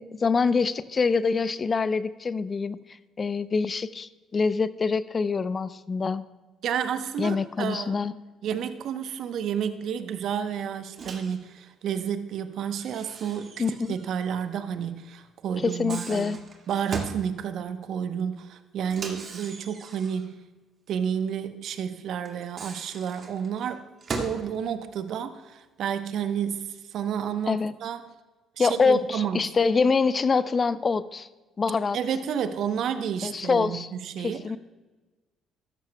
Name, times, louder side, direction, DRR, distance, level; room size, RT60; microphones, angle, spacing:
voice 1, 0.0-2.8 3.2-6.2 7.2-8.1 13.6-14.0 15.6-16.4 27.5-27.7 28.6-31.3 31.6-32.0 33.2-33.9 34.2-34.6, left 4 dB, 40° left, 15 dB, 0.6 m, -25 dB
voice 2, 6.6-7.9 8.4-20.4 20.9-23.8 24.2-28.0 28.6-29.4 31.9-34.4, right 8 dB, 65° right, 10 dB, 0.9 m, -31 dB
Microwave oven, 10.9-11.4 12.7-14.1 14.4-14.5 15.6-17.2 18.8-20.3 22.3-24.4, right 4 dB, 50° right, 1.9 m, -38 dB
15.0 x 13.0 x 2.3 m, 1.2 s
hypercardioid pair, 55°, 0 cm